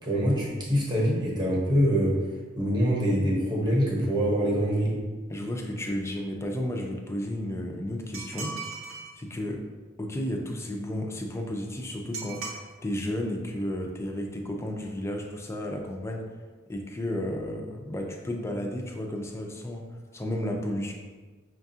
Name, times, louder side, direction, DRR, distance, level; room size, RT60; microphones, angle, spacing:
voice 1, 0.0-2.2 2.6-5.0, equal, 20° right, -4 dB, 0.9 m, -24 dB
voice 2, 5.3-8.6 9.2-9.7 10.0-16.3 16.7-19.9 20.1-20.9, left 1 dB, 15° left, 1 dB, 0.4 m, -32 dB
sound 1, 8.1-9.1 12.1-12.6, right 4 dB, 85° right, 0.8 m, -37 dB
5.7 x 2.4 x 2.7 m, 1.4 s
head